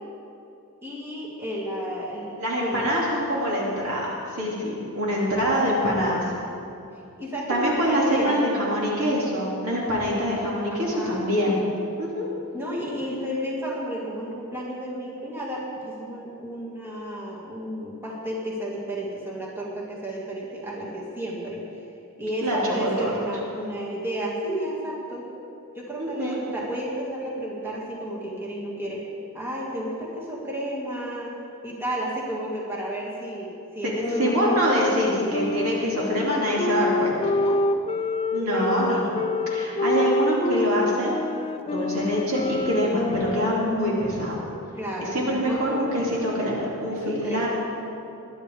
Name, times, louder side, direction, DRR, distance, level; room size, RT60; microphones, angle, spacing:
voice 1, 0.8-2.8 7.2-8.4 10.7-11.3 12.5-21.6 22.2-25.3 25.7-29.0 29.3-31.3 31.6-34.4 37.3-37.6 38.5-39.2 44.7-45.6 46.9-47.5, right 1 dB, 10° right, -5 dB, 2.1 m, -32 dB
voice 2, 2.4-6.2 7.5-11.6 12.0-12.3 22.4-23.1 26.0-26.4 33.8-33.9 34.2-37.3 38.3-39.1 39.5-41.2 41.6-44.4 45.0-47.5, equal, 75° right, -5 dB, 2.7 m, -25 dB
Wind instrument woodwind instrument, 34.0-44.0, left 2 dB, 25° left, 0.4 m, -27 dB
21.0 x 11.5 x 3.5 m, 2.7 s
head